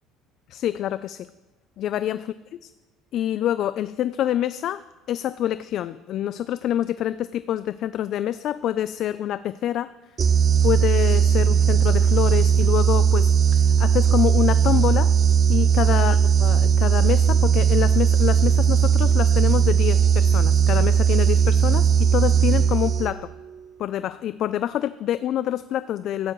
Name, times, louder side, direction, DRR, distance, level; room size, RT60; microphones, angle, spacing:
voice 1, 0.5-1.3 1.8-2.3 2.6-2.7 3.1-4.8 5.1-9.9 10.6-15.1 15.5-23.3 23.8-26.3, left 11 dB, 45° left, 14 dB, 0.3 m, -26 dB
sound 1, 10.2-23.3, right 7 dB, 30° right, 0.5 m, -18 dB
16.5 x 13.5 x 3.1 m, 1.1 s
cardioid pair, 155°, 0 cm